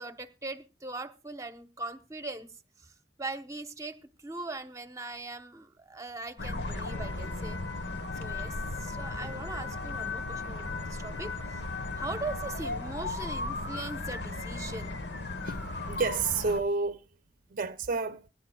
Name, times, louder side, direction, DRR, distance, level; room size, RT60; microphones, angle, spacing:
voice 1, 0.0-7.6 8.1-11.6 12.0-15.0, right 2 dB, 20° right, 1.0 m, -40 dB
sound 1, 6.4-16.6, left 3 dB, 70° left, 1.2 m, -36 dB
voice 2, 15.9-17.0 17.5-18.3, right 4 dB, 50° right, 0.7 m, -30 dB
24.5 x 10.5 x 2.3 m
head